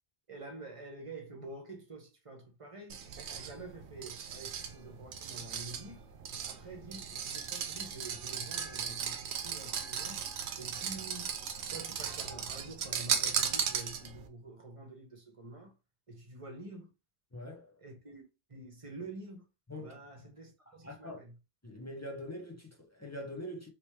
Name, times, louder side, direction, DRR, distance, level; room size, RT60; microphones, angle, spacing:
voice 1, 0.3-3.0 3.3-6.0 6.5-10.2 10.6-11.3 11.7-15.7 16.1-16.9 17.8-19.5 19.8-21.3, right 2 dB, 30° right, 1.0 m, -48 dB
sound 1, 2.9-14.3, right 7 dB, 75° right, 0.9 m, -37 dB
voice 2, 17.3-17.8 19.7-20.0 20.7-21.2 21.6-23.7, left 1 dB, 20° left, 0.6 m, -43 dB
3.0 x 2.9 x 3.2 m
omnidirectional pair, 1.1 m